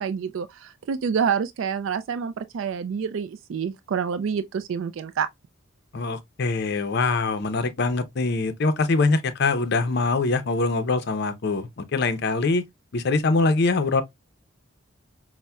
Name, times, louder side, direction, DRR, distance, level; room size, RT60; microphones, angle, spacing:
voice 1, 0.0-5.3, right 6 dB, 70° right, 0.3 m, -27 dB
voice 2, 5.9-12.6 12.9-14.0, left 3 dB, 55° left, 0.5 m, -23 dB
5.4 x 2.1 x 2.2 m
head